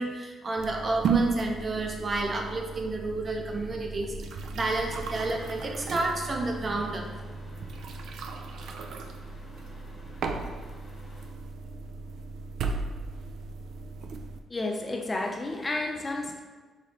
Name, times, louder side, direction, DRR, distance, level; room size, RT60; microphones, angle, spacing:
voice 1, 0.0-4.1 4.5-7.1, right 2 dB, 35° right, 1 dB, 0.6 m, -30 dB
sound 1, 0.6-14.4, right 4 dB, 70° right, 0.3 m, -35 dB
sound 2, 4.8-11.3, left 1 dB, 40° left, 0.9 m, -49 dB
voice 2, 14.5-16.4, left 2 dB, 25° left, 2 dB, 0.4 m, -31 dB
4.9 x 3.1 x 2.7 m, 1.3 s
cardioid pair, 90°, 0 cm